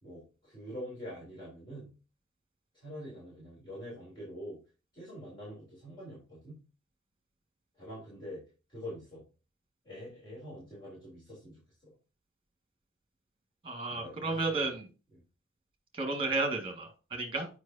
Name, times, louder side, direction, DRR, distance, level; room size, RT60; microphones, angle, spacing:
voice 1, 0.0-1.9 2.7-4.6 4.9-6.5 7.8-8.4 8.7-9.2 9.8-11.9 13.9-14.7, equal, 25° left, -9 dB, 3.1 m, -45 dB
voice 2, 13.6-14.8 15.9-17.5, right 3 dB, 25° right, 4 dB, 1.7 m, -32 dB
7.8 x 5.2 x 2.7 m, 0.33 s
head